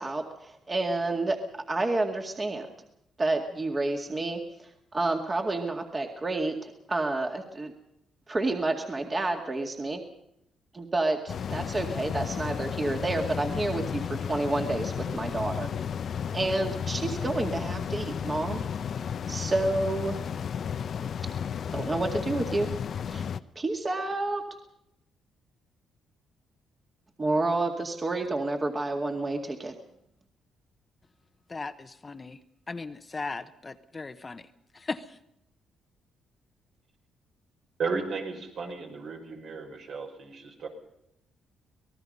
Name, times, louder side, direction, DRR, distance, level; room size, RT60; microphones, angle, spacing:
voice 1, 0.0-1.4 1.7-2.7 3.2-7.7 8.3-10.0 10.7-15.7 16.3-18.6 19.3-20.2 21.7-22.7 23.1-23.3 23.6-24.4 27.2-29.7, right 2 dB, 30° right, 3 dB, 2.1 m, -29 dB
sound 1, 11.3-23.4, left 7 dB, 55° left, 0.8 m, -33 dB
voice 2, 31.5-32.4 32.7-34.5 34.7-35.2, left 3 dB, 25° left, 10 dB, 1.0 m, -37 dB
voice 3, 37.8-40.7, right 4 dB, 65° right, 2 dB, 5.6 m, -34 dB
25.5 x 19.0 x 5.5 m, 0.80 s
cardioid pair, 90°, 0 cm